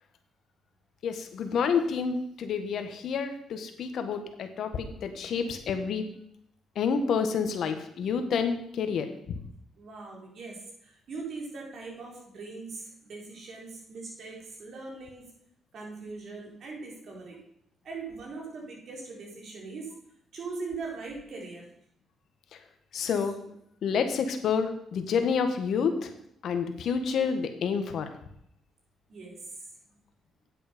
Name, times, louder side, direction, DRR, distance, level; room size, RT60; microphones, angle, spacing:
voice 1, 1.0-6.0 6.7-9.4 22.9-23.4 23.8-26.1 26.4-28.1, left 6 dB, 65° left, 7 dB, 1.4 m, -29 dB
voice 2, 9.8-15.3 15.7-17.4 17.8-20.0 20.3-21.7 29.1-29.6, right 4 dB, 60° right, -1 dB, 4.0 m, -41 dB
9.2 x 7.8 x 5.2 m, 0.72 s
cardioid pair, 90°, 0 cm